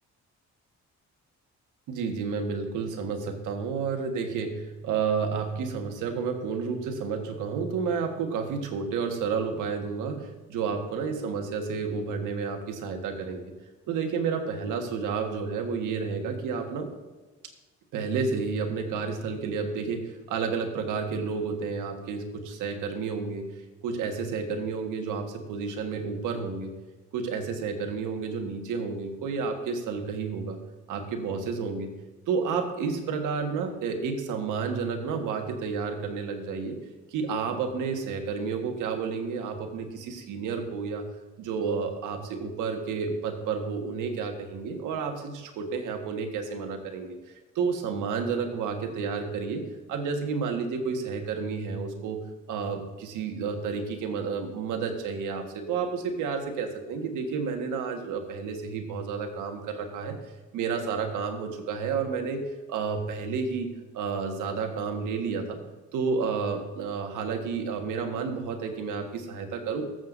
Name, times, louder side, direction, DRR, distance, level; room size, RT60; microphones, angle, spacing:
voice 1, 1.9-13.5 13.9-16.9 17.9-23.5 23.8-26.7 27.1-30.6 30.9-31.9 32.3-36.8 37.1-41.1 41.4-47.2 47.5-49.6 49.9-60.1 60.5-62.4 62.7-63.7 63.9-65.6 65.9-69.8, right 5 dB, 90° right, 4 dB, 1.5 m, -31 dB
14.0 x 7.7 x 2.6 m, 1.2 s
cardioid pair, 90°, 30 cm